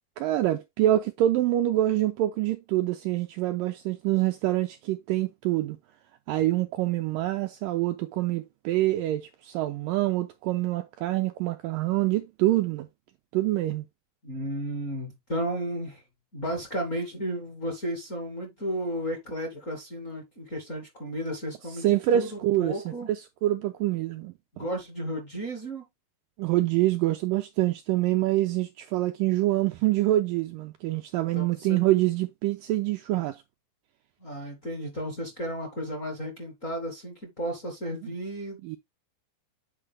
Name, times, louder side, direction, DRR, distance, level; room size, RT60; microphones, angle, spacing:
voice 1, 0.2-5.8 6.3-12.9 13.3-13.9 21.8-24.7 26.4-33.4 38.6-38.8, right 15 dB, 80° right, 2.0 m, -26 dB
voice 2, 14.2-16.0 16.3-23.1 24.5-25.8 31.3-31.8 34.2-38.8, equal, 25° left, 1.8 m, -33 dB
8.9 x 4.8 x 3.5 m
omnidirectional pair, 4.5 m